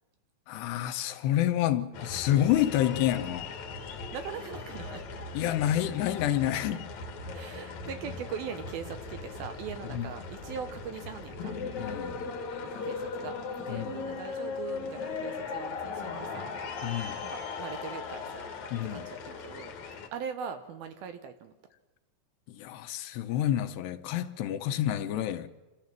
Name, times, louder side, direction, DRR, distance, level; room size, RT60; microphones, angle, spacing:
voice 1, 0.5-3.5 5.3-6.9 9.9-10.0 11.8-12.2 13.7-13.9 16.8-17.2 18.7-19.0 22.5-25.5, left 12 dB, 80° left, 2.8 m, -28 dB
sound 1, 1.9-20.1, left 4 dB, 55° left, 2.2 m, -38 dB
voice 2, 4.1-5.0 7.3-11.6 12.6-16.5 17.2-18.5 18.9-19.8 20.1-21.5, right 7 dB, 75° right, 2.5 m, -41 dB
27.5 x 13.5 x 7.5 m
omnidirectional pair, 5.0 m